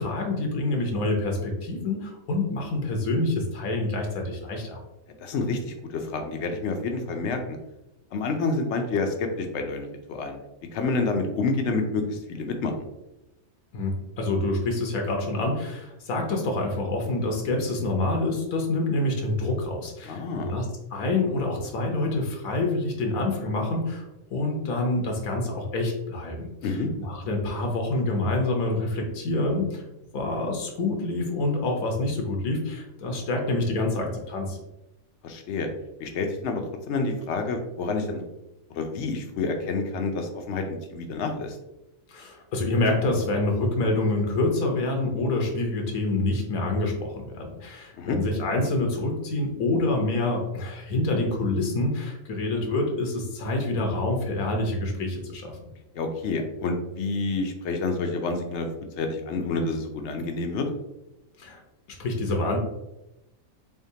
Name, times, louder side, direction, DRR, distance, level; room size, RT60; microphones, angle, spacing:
voice 1, 0.0-4.8 13.7-20.7 20.9-26.5 27.0-29.8 30.1-34.6 42.1-55.5 61.4-61.6 61.9-62.6, left 2 dB, 85° left, 2 dB, 1.3 m, -27 dB
voice 2, 5.2-7.6 8.1-10.4 10.7-12.9 20.0-20.6 26.6-26.9 35.2-35.7 36.0-36.6 36.9-38.2 38.7-41.6 48.0-48.2 55.9-58.7 59.0-60.7, left 3 dB, 65° left, 5 dB, 0.8 m, -28 dB
3.6 x 3.6 x 2.7 m, 0.93 s
omnidirectional pair, 1.4 m